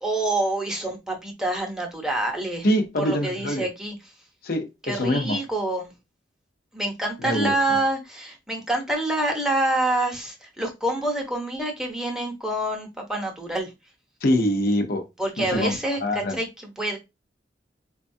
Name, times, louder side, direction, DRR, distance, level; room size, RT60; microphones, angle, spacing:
voice 1, 0.0-2.7 3.0-4.0 4.8-5.9 6.7-13.7 15.2-17.0, right 2 dB, 5° right, 0.8 m, -27 dB
voice 2, 2.6-3.6 4.4-5.4 7.2-7.8 14.2-15.0 15.4-15.7 16.0-16.4, left 1 dB, 55° left, 0.7 m, -24 dB
4.4 x 2.3 x 2.6 m
head